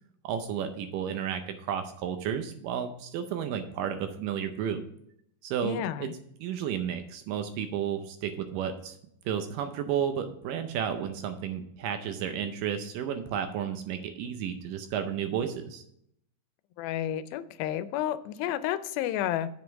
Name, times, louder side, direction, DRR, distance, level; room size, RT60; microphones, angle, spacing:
voice 1, 0.2-4.8 5.4-6.1 6.4-9.0 9.3-15.8, right 8 dB, 80° right, 8 dB, 2.1 m, -32 dB
voice 2, 5.6-6.1 16.8-19.5, left 11 dB, 90° left, 13 dB, 2.4 m, -31 dB
7.7 x 5.2 x 7.0 m, 0.73 s
omnidirectional pair, 4.1 m